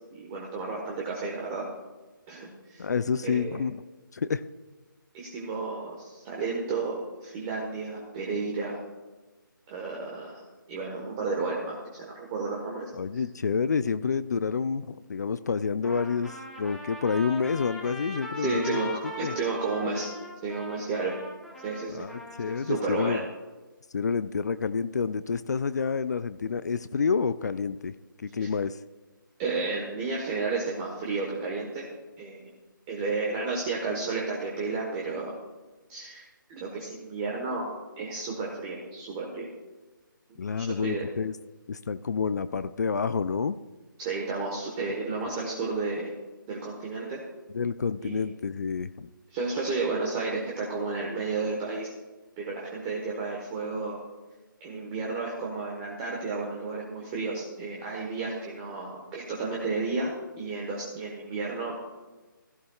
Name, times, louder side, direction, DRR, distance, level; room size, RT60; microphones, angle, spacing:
voice 1, 0.1-1.7 2.3-2.9 3.2-3.6 5.1-8.8 9.7-13.2 18.4-18.9 19.2-20.1 20.4-21.1 21.6-22.0 22.4-23.2 28.4-28.5 29.4-31.9 32.2-32.5 32.9-35.3 35.9-36.2 36.5-37.7 38.0-39.5 40.3-41.0 44.0-46.1 46.5-47.2 48.0-48.2 49.3-51.9 52.4-54.0 54.6-61.8, right 3 dB, 15° right, -2 dB, 1.3 m, -32 dB
voice 2, 2.8-3.8 4.1-4.4 12.9-18.8 19.2-19.3 21.9-23.2 23.9-27.9 28.2-28.8 40.4-41.3 41.7-43.6 47.5-49.1, left 5 dB, 50° left, 14 dB, 0.4 m, -28 dB
Trumpet, 15.8-22.8, left 1 dB, ahead, 0.8 m, -41 dB
16.0 x 14.5 x 2.4 m, 1.2 s
hypercardioid pair, 165°, 11 cm